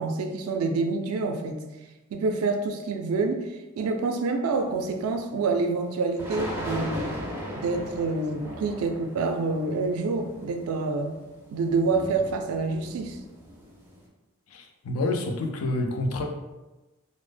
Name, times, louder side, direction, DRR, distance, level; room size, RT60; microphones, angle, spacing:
voice 1, 0.0-1.6 2.1-3.5 3.8-7.1 7.5-11.1 11.5-13.2, right 3 dB, 85° right, 5 dB, 0.3 m, -27 dB
sound 1, 4.8-4.9 6.2-14.1, equal, 10° right, 0.3 m, -38 dB
voice 2, 14.5-16.2, left 2 dB, 80° left, 3 dB, 0.4 m, -28 dB
2.0 x 2.0 x 3.2 m, 1.1 s
head